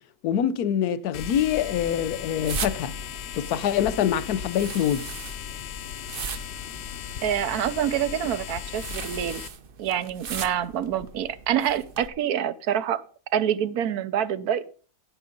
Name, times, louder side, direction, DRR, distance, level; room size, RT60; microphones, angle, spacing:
voice 1, 0.2-2.9 3.4-5.1, left 9 dB, 90° left, 1.2 m, -25 dB
sound 1, 1.1-9.5, left 9 dB, 60° left, 0.7 m, -37 dB
sound 2, 1.2-12.1, right 5 dB, 45° right, 0.8 m, -40 dB
voice 2, 7.2-9.4 9.8-13.0 13.3-14.6, right 10 dB, 80° right, 1.3 m, -26 dB
10.5 x 9.0 x 5.2 m
omnidirectional pair, 1.6 m